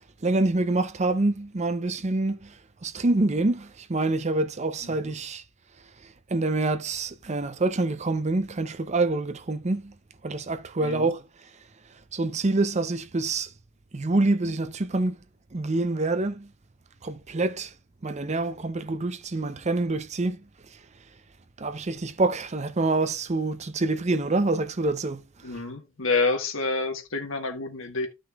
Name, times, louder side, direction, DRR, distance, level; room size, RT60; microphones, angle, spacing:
voice 1, 0.2-2.6 2.8-5.4 6.0-9.9 10.2-11.2 12.1-13.5 13.9-15.2 15.5-16.5 17.0-17.7 18.0-20.4 20.7-20.8 21.6-25.6, right 2 dB, 35° right, 0.6 m, -26 dB
voice 2, 4.8-5.1 10.8-11.1 25.4-28.1, left 3 dB, 85° left, 1.5 m, -28 dB
14.0 x 6.2 x 2.3 m
head